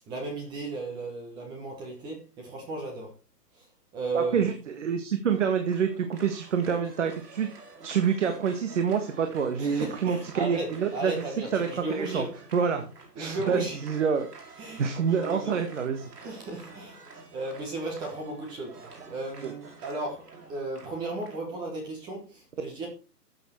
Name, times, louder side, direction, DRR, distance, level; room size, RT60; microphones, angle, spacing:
voice 1, 0.1-3.2 3.5-3.7 3.9-4.5 9.6-12.4 13.1-13.8 14.6-15.6 16.2-17.0 17.3-22.9, right 2 dB, 10° right, 1.2 m, -35 dB
voice 2, 4.1-4.5 4.8-7.5 7.8-11.1 11.5-12.2 12.5-12.8 13.2-14.3 14.8-16.0, right 6 dB, 45° right, 1.7 m, -27 dB
sound 1, 5.3-21.4, right 3 dB, 75° right, 6.3 m, -49 dB
13.0 x 7.7 x 4.5 m
hypercardioid pair, 160°, 48 cm